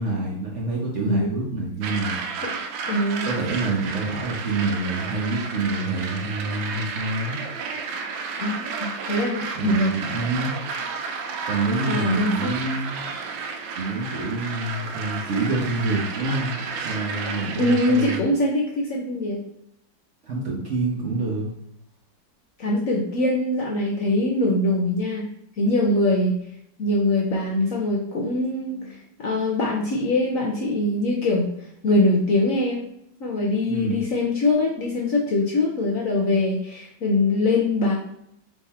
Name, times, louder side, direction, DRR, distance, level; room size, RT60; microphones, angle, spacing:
voice 1, 0.0-2.2 3.2-7.4 9.6-10.5 11.5-13.0 13.7-18.2 20.2-21.5 33.7-34.0, right 2 dB, 50° right, -3 dB, 1.0 m, -27 dB
sound 1, 1.8-18.2, right 5 dB, 90° right, 1.3 m, -32 dB
voice 2, 2.9-3.3 8.4-9.9 11.9-12.5 17.6-19.4 22.6-25.3 25.6-26.4 26.8-31.5 31.8-32.9 33.2-37.9, left 2 dB, 60° left, -2 dB, 0.9 m, -23 dB
3.8 x 3.3 x 4.2 m, 0.76 s
omnidirectional pair, 2.0 m